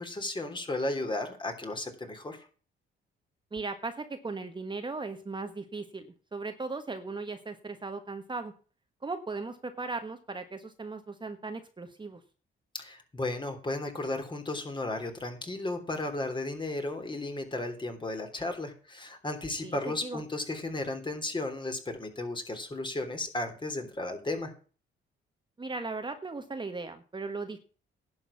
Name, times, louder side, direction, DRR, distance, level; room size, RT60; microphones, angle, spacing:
voice 1, 0.0-2.4 12.8-24.5, left 2 dB, 25° left, 6 dB, 3.3 m, -34 dB
voice 2, 3.5-8.5 9.0-12.2 19.6-20.2 25.6-27.6, right 3 dB, 25° right, 7 dB, 1.4 m, -37 dB
11.0 x 6.5 x 7.1 m, 0.38 s
cardioid pair, 90°, 20 cm